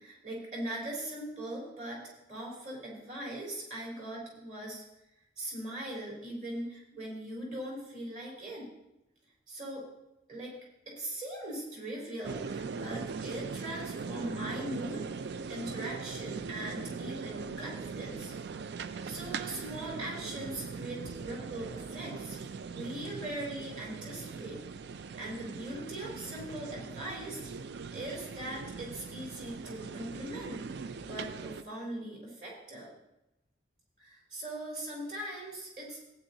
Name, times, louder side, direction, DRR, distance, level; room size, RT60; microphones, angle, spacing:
voice 1, 0.0-2.0 2.3-4.8 5.4-8.7 9.5-9.9 10.3-10.6 10.9-15.0 15.5-18.3 18.8-22.4 22.7-24.6 25.2-27.5 27.9-32.9 34.0-36.0, right 1 dB, 45° right, -4 dB, 4.0 m, -40 dB
sound 1, 12.2-31.6, right 5 dB, 60° right, 0.4 m, -40 dB
15.5 x 9.4 x 2.7 m, 0.89 s
head